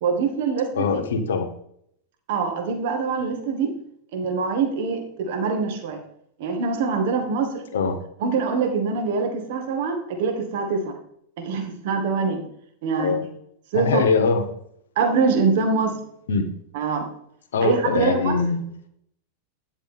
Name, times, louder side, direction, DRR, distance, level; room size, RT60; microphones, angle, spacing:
voice 1, 0.0-1.0 2.3-3.7 4.1-6.0 6.4-7.6 8.2-10.9 11.4-12.4 12.8-13.2 13.7-14.0 15.0-16.0 16.7-17.1 17.6-18.4, right 5 dB, 50° right, 4 dB, 1.9 m, -24 dB
voice 2, 0.7-1.5 7.7-8.0 13.0-13.2 13.7-14.4 16.3-16.5 17.5-18.6, left 5 dB, 60° left, 8 dB, 1.2 m, -22 dB
9.9 x 7.2 x 3.7 m, 0.69 s
figure-of-eight pair, 90°, 0 cm